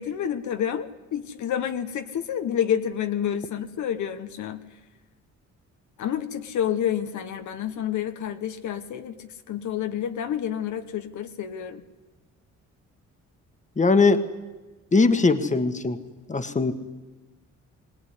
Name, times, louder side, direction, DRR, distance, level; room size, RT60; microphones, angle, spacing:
voice 1, 0.0-4.6 6.0-11.8, left 9 dB, 75° left, 8 dB, 1.4 m, -29 dB
voice 2, 13.8-14.2 14.9-16.0 16.3-16.7, left 3 dB, 25° left, 9 dB, 1.7 m, -20 dB
21.0 x 18.5 x 10.0 m, 1.2 s
cardioid pair, 90°, 30 cm